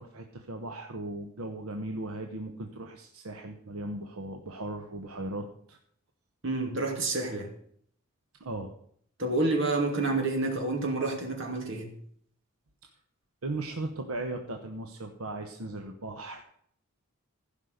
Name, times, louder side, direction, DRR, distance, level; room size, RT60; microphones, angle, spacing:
voice 1, 0.0-5.8 8.4-8.8 13.4-16.4, right 2 dB, 80° right, 4 dB, 1.1 m, -37 dB
voice 2, 6.4-7.5 9.2-11.9, right 2 dB, 60° right, 2 dB, 2.7 m, -29 dB
15.5 x 5.5 x 6.6 m, 0.63 s
head